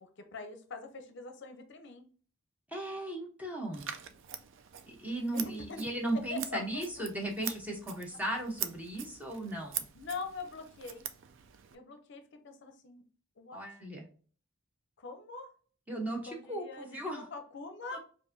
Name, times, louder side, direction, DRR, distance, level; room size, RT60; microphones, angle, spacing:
voice 1, 0.0-2.0 5.3-5.9 6.3-6.6 9.0-9.1 9.9-11.0 11.7-13.0 13.4-13.6 15.0-15.5 16.3-18.0, left 4 dB, 60° left, 7 dB, 0.5 m, -43 dB
voice 2, 2.7-4.0 4.9-9.8 13.5-14.0 15.9-17.3 17.9-18.0, right 1 dB, 10° right, 0 dB, 0.8 m, -36 dB
Scissors, 3.7-11.8, right 10 dB, 65° right, 0.4 m, -43 dB
4.6 x 2.5 x 2.6 m, 0.42 s
head